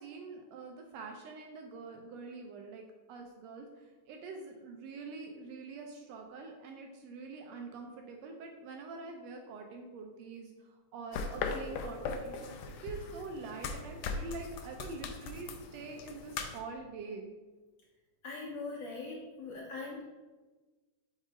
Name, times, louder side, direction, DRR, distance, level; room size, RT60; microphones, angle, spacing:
voice 1, 0.0-17.3, right 3 dB, 80° right, 3 dB, 1.5 m, -45 dB
sound 1, 11.1-16.6, left 4 dB, 85° left, 1.5 m, -39 dB
voice 2, 18.2-20.1, left 3 dB, 70° left, -5 dB, 1.8 m, -41 dB
5.2 x 3.8 x 4.9 m, 1.2 s
omnidirectional pair, 3.5 m